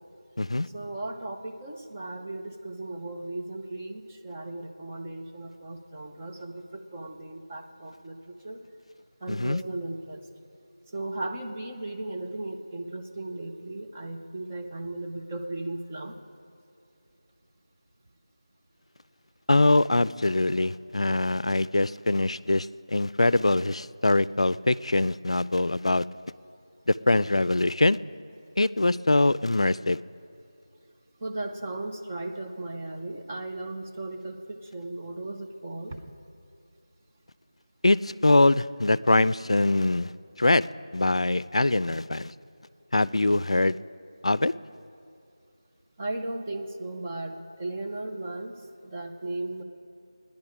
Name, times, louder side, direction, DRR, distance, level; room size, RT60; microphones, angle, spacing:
voice 1, 0.7-8.1 8.4-8.6 9.2-10.2 10.9-16.1 31.2-36.0 46.0-47.3 47.6-48.5 48.9-49.6, right 2 dB, 15° right, 2 dB, 0.5 m, -36 dB
voice 2, 9.3-9.6 19.5-26.0 26.9-28.0 28.6-30.0 37.8-40.1 40.4-42.3 42.9-43.8 44.2-44.5, left 2 dB, 80° left, 19 dB, 0.4 m, -23 dB
17.5 x 10.5 x 4.9 m, 2.6 s
figure-of-eight pair, 175°, 3 cm